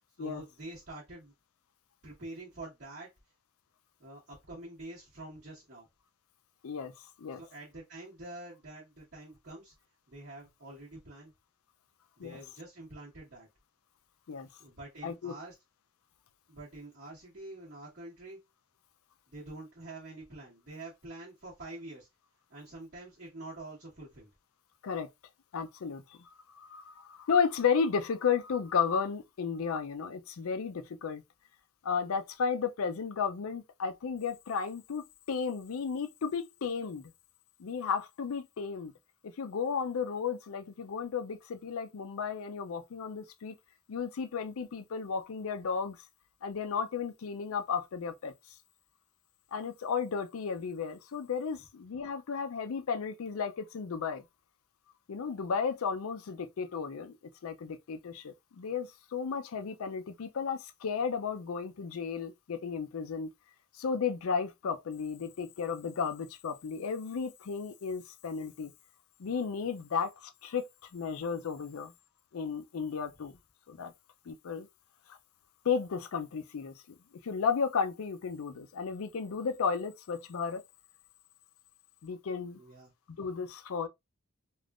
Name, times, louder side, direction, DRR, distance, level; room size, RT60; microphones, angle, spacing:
voice 1, 0.2-1.3 2.0-3.1 4.0-5.9 7.4-9.7 10.1-11.3 12.2-13.5 14.6-15.5 16.5-18.4 19.3-22.1 22.5-24.3 82.6-82.9, right 2 dB, 50° right, 1.3 m, -46 dB
voice 2, 15.0-15.3 24.8-25.1 25.5-26.2 26.5-31.2 31.8-37.1 37.6-38.9 39.2-43.5 43.9-46.0 46.4-48.3 49.5-54.2 55.1-57.1 57.4-63.3 63.8-68.7 69.2-70.7 70.9-71.9 72.3-73.3 73.7-73.9 74.3-74.7 75.1-75.2 75.6-76.7 77.2-80.6 82.0-82.6 83.2-83.9, left 6 dB, 80° left, 0.4 m, -33 dB
3.4 x 2.5 x 2.4 m
head